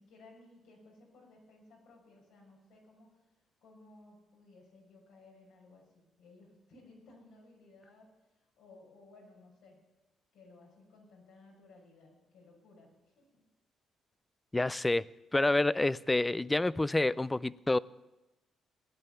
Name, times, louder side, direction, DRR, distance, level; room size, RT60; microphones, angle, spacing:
voice 1, 0.0-3.3 3.6-9.8 10.3-13.4, left 2 dB, 85° left, 6.4 m, -58 dB
voice 2, 14.5-17.8, left 2 dB, 15° left, 0.4 m, -28 dB
17.0 x 11.0 x 7.0 m
cardioid pair, 90°, 0 cm